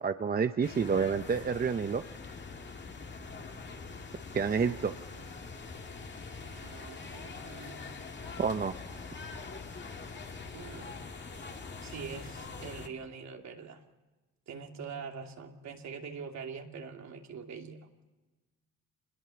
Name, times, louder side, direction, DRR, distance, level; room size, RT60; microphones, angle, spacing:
voice 1, 0.0-2.0 4.3-4.9 8.4-8.7, right 6 dB, 30° right, 9 dB, 0.8 m, -29 dB
sound 1, 0.6-12.9, left 4 dB, 35° left, 2.2 m, -44 dB
voice 2, 4.6-5.0 5.3-5.5 6.3-7.9 10.5-10.9 11.3-11.4 11.8-13.8 14.5-17.8, right 6 dB, 65° right, 3 dB, 2.8 m, -44 dB
27.0 x 21.0 x 7.1 m, 1.2 s
cardioid pair, 90°, 30 cm